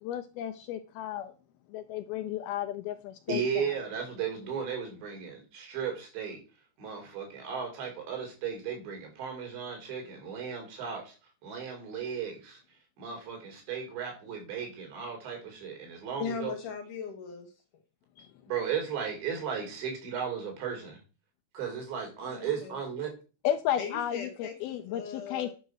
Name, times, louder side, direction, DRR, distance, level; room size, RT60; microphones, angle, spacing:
voice 1, 0.0-1.3 1.7-3.4 18.2-18.3 23.4-25.5, left 11 dB, 80° left, 2.3 m, -33 dB
voice 2, 3.3-6.4 6.8-11.1 11.4-12.6 13.0-16.5 18.5-21.0 21.5-23.1, right 7 dB, 85° right, 6.1 m, -35 dB
voice 3, 16.2-17.5 22.2-22.8 23.8-25.5, left 6 dB, 65° left, 2.3 m, -39 dB
10.5 x 6.0 x 6.4 m
omnidirectional pair, 4.9 m